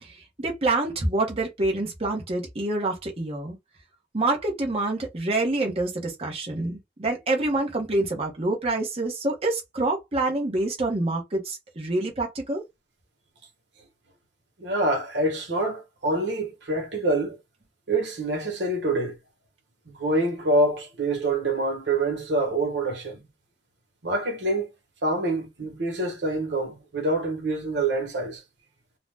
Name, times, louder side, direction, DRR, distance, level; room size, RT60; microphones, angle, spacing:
voice 1, 0.0-3.6 4.1-12.6, right 2 dB, 35° right, 0.8 m, -27 dB
voice 2, 14.6-17.4 17.9-19.2 19.9-23.2 24.0-24.7 25.0-28.4, right 2 dB, 90° right, 1.1 m, -26 dB
2.6 x 2.1 x 3.3 m
head